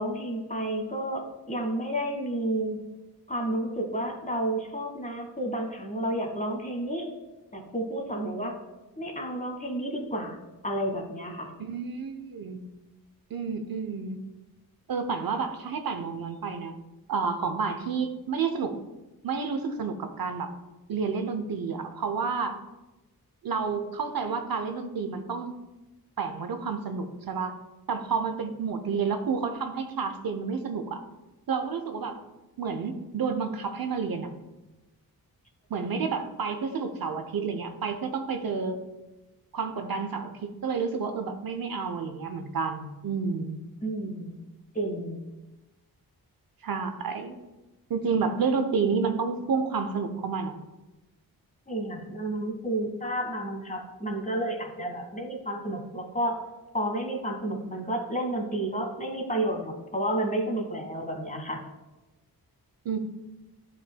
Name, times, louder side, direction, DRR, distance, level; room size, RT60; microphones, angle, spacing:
voice 1, 0.0-2.9 3.3-7.1 7.5-8.5 9.0-10.4 10.6-11.5 43.8-44.3 44.7-45.2 51.7-56.4 56.7-61.6, right 1 dB, 20° left, 3 dB, 1.4 m, -31 dB
voice 2, 11.6-12.6 13.3-14.2 14.9-16.7 17.1-18.8 19.2-20.5 20.9-22.6 23.4-25.6 26.2-27.5 27.9-31.0 31.5-32.2 32.6-34.3 35.7-38.8 39.5-43.6 46.6-47.4 47.9-50.6 62.8-63.0, right 5 dB, 65° right, 7 dB, 0.7 m, -30 dB
11.5 x 5.2 x 2.2 m, 1.1 s
cardioid pair, 70°, 38 cm